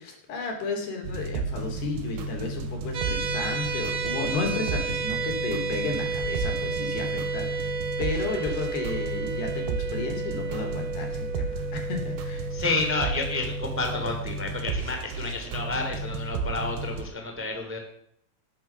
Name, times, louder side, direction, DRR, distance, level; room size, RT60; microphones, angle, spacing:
voice 1, 0.0-12.5, left 4 dB, 75° left, 3 dB, 5.3 m, -33 dB
sound 1, 1.0-17.0, right 3 dB, 80° right, 3.6 m, -33 dB
sound 2, 2.9-14.1, right 5 dB, 50° right, 2.6 m, -33 dB
voice 2, 12.5-17.8, left 3 dB, 5° right, 3 dB, 2.3 m, -30 dB
19.5 x 10.5 x 5.9 m, 0.71 s
omnidirectional pair, 4.7 m